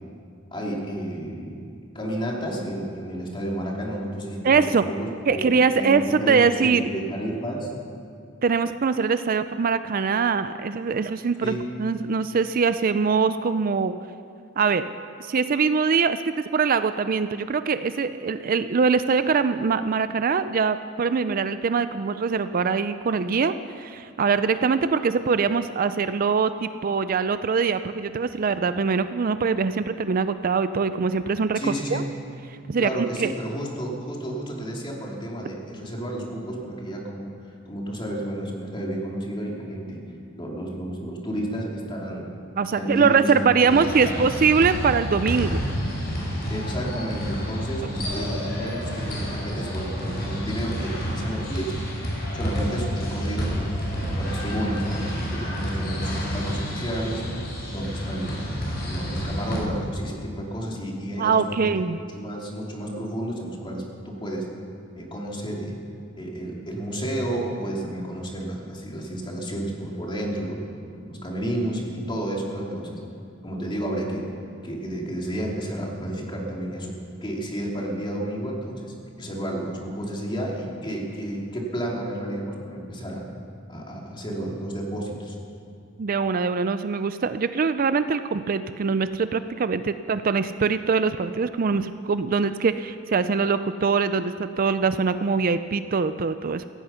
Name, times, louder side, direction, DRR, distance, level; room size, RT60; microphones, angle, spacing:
voice 1, 0.5-7.7 11.4-11.7 31.5-32.1 32.8-40.0 40.4-42.3 42.8-44.2 46.5-51.9 52.3-57.2 57.7-58.4 58.9-61.7 62.1-64.5 64.9-65.8 66.2-70.6 70.9-73.0 73.4-74.3 74.6-76.9 77.2-83.2 83.7-85.3, right 1 dB, 25° left, -2 dB, 2.9 m, -31 dB
voice 2, 4.4-4.8 5.3-6.8 8.4-13.9 14.6-14.8 15.2-31.6 31.9-32.0 32.7-33.3 42.6-45.6 47.8-47.9 61.2-62.0 86.0-96.7, right 5 dB, 45° right, 12 dB, 0.4 m, -23 dB
sound 1, 43.7-59.6, equal, 50° left, 4.9 m, -29 dB
16.0 x 16.0 x 5.7 m, 2.3 s
head